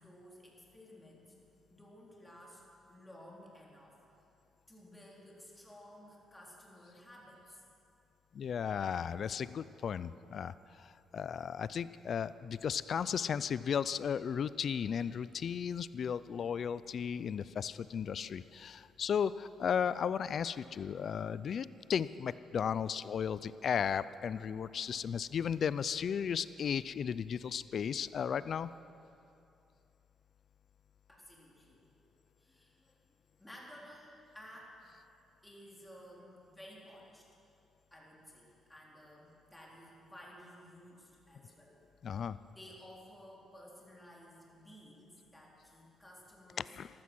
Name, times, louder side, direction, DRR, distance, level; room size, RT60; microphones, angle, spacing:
voice 1, 0.0-1.3 1.7-2.6 2.9-4.0 4.7-7.6 31.1-33.0 33.4-34.9 35.4-37.3 37.9-41.8 42.1-46.7, equal, 10° left, -3 dB, 3.7 m, -55 dB
voice 2, 8.3-28.7 42.0-42.4 46.7-46.9, left 7 dB, 55° left, 16 dB, 0.4 m, -35 dB
14.5 x 12.5 x 6.1 m, 2.7 s
cardioid pair, 90°, 0 cm